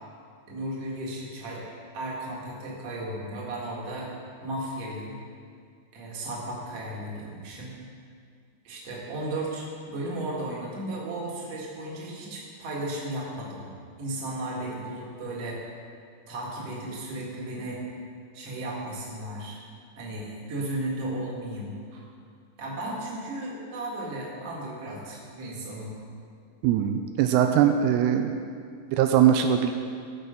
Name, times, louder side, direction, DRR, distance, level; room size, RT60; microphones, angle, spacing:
voice 1, 0.5-1.6 1.9-4.1 4.4-5.2 5.9-7.7 8.6-13.7 14.0-15.7 16.3-17.8 18.3-19.6 19.9-22.0 22.6-26.0, right 1 dB, 45° right, -4 dB, 2.6 m, -35 dB
voice 2, 26.6-28.4 28.9-29.7, right 9 dB, 85° right, 6 dB, 2.6 m, -21 dB
16.5 x 6.7 x 5.3 m, 2.2 s
omnidirectional pair, 4.7 m